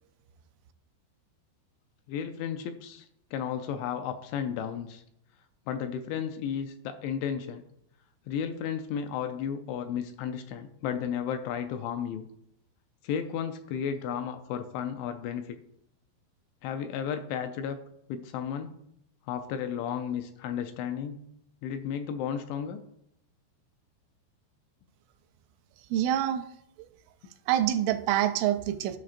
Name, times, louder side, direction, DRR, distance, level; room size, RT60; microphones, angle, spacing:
voice 1, 2.1-3.1 3.3-5.0 5.7-7.6 8.3-12.2 13.0-15.6 16.6-17.8 18.1-18.8 19.3-21.3 21.6-22.8, left 8 dB, 85° left, 8 dB, 2.7 m, -33 dB
voice 2, 25.9-26.4 27.5-29.0, right 12 dB, 85° right, 8 dB, 3.0 m, -26 dB
12.5 x 5.9 x 2.5 m, 0.75 s
omnidirectional pair, 5.5 m